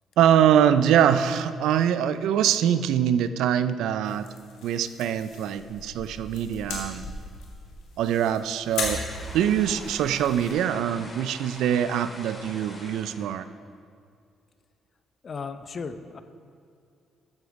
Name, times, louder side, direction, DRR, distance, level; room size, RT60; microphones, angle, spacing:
voice 1, 0.2-4.3 4.6-7.1 8.0-9.0 9.3-13.5, right 9 dB, 85° right, 12 dB, 0.4 m, -23 dB
sound 1, 4.0-10.5, left 3 dB, 90° left, 2.2 m, -38 dB
sound 2, 9.1-13.3, left 1 dB, 25° left, 3.1 m, -43 dB
voice 2, 15.2-16.2, left 5 dB, 45° left, 10 dB, 0.7 m, -35 dB
13.0 x 8.0 x 5.2 m, 2.3 s
cardioid pair, 90°, 0 cm